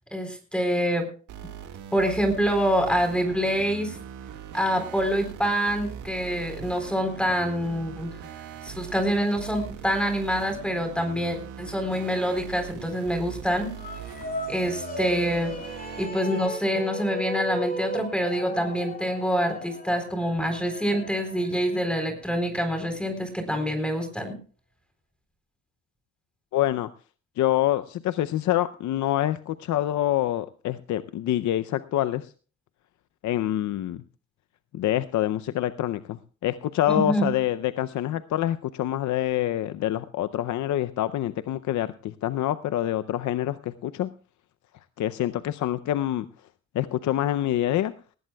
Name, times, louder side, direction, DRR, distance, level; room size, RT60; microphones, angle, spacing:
voice 1, 0.1-1.1 1.9-4.0 4.5-8.1 8.6-13.7 14.5-15.5 16.0-24.4 36.9-37.3, equal, 5° left, 6 dB, 3.9 m, -26 dB
sound 1, 1.3-16.1, right 9 dB, 80° right, 1.8 m, -41 dB
sound 2, 13.7-22.2, left 1 dB, 30° left, 2.6 m, -36 dB
voice 2, 26.5-26.9 27.4-32.3 33.2-34.0 34.7-44.1 45.0-46.3 46.7-47.9, left 13 dB, 70° left, 12 dB, 0.6 m, -26 dB
19.0 x 15.5 x 2.3 m, 0.38 s
cardioid pair, 90°, 30 cm